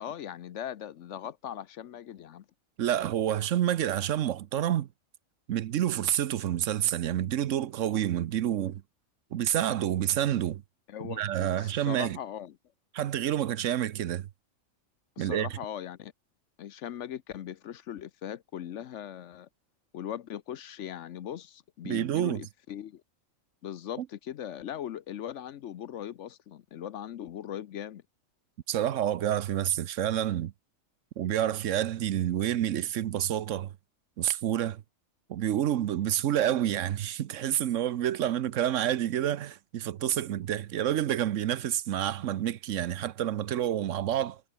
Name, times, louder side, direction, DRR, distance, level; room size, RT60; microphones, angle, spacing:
voice 1, 0.0-2.4 10.9-12.6 15.2-16.1 16.6-19.5 19.9-23.0 23.6-28.0, left 10 dB, 65° left, 1.0 m, -39 dB
voice 2, 2.8-4.9 5.5-8.8 9.3-10.6 11.0-12.2 12.9-14.3 15.2-15.5 21.8-22.4 24.0-24.1 28.7-30.5 31.2-33.7 34.2-34.8 35.3-44.4, right 11 dB, 70° right, 1.0 m, -28 dB
omnidirectional pair, 1.4 m